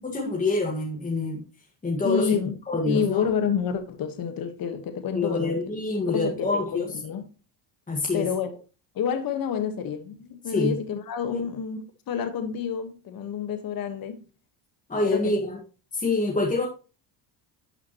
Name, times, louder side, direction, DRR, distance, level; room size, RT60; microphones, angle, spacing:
voice 1, 0.0-1.4 1.8-2.3 2.7-3.2 5.1-6.9 7.9-8.3 10.5-10.7 11.3-11.4 14.9-15.6 15.9-16.7, left 2 dB, 15° left, 1.8 m, -26 dB
voice 2, 2.0-2.6 2.8-5.6 6.1-7.3 8.1-8.5 8.9-11.8 12.1-14.2 15.0-15.3, left 7 dB, 50° left, 1.5 m, -29 dB
12.0 x 5.9 x 3.0 m
cardioid pair, 115°, 46 cm